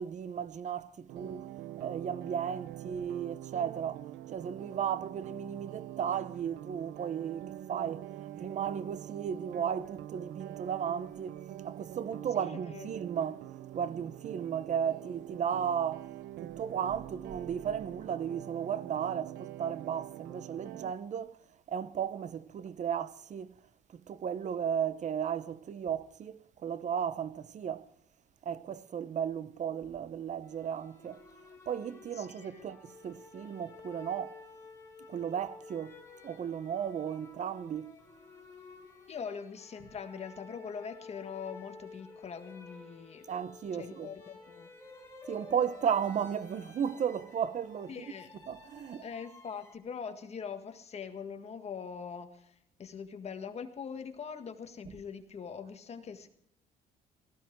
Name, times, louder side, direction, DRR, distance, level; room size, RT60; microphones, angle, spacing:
voice 1, 0.0-1.5 1.8-13.4 13.7-16.1 16.4-21.4 21.7-23.6 23.9-27.9 28.4-31.2 31.7-34.4 35.1-36.0 36.2-37.9 43.3-44.1 45.3-48.0 48.5-49.0, right 8 dB, 45° right, 0.9 m, -35 dB
sound 1, 1.1-20.9, right 13 dB, 75° right, 0.7 m, -45 dB
voice 2, 12.4-13.0 32.2-32.7 39.1-43.3 43.7-44.7 47.9-48.3 49.0-56.3, left 6 dB, 40° left, 1.7 m, -42 dB
sound 2, 30.4-49.8, left 3 dB, 15° left, 3.8 m, -52 dB
18.0 x 15.0 x 4.6 m
cardioid pair, 110°, 17 cm